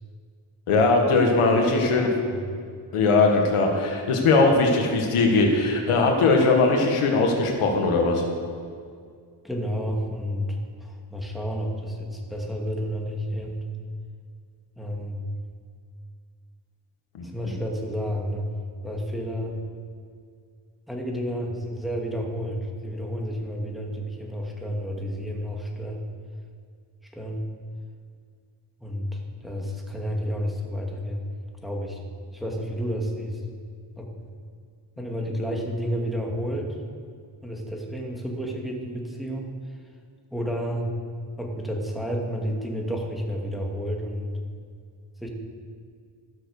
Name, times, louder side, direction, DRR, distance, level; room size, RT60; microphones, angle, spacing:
voice 1, 0.7-2.1 2.9-8.2, left 3 dB, 80° left, 2 dB, 1.8 m, -20 dB
voice 2, 1.6-2.5 9.4-13.6 14.8-15.2 17.2-18.5 18.8-19.6 20.9-26.0 27.1-27.4 28.8-31.2 31.6-32.0 32.3-33.4 34.0-34.1 35.0-36.7 37.4-39.5 40.3-40.9 41.4-44.3 45.2-45.3, equal, ahead, -1 dB, 2.5 m, -31 dB
13.5 x 6.8 x 6.7 m, 2.1 s
supercardioid pair, 55°, 50 cm